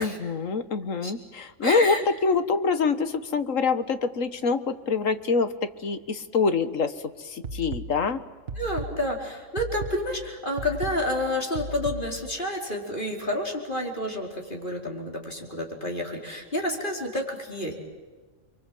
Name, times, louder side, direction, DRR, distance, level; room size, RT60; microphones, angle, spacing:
voice 1, 0.0-8.2, left 4 dB, 75° left, 11 dB, 1.7 m, -25 dB
voice 2, 1.6-2.0 8.6-17.7, left 1 dB, 40° left, 0 dB, 4.9 m, -29 dB
sound 1, 7.4-12.4, right 2 dB, 50° right, 1.6 m, -37 dB
30.0 x 23.5 x 7.8 m, 1.4 s
omnidirectional pair, 1.3 m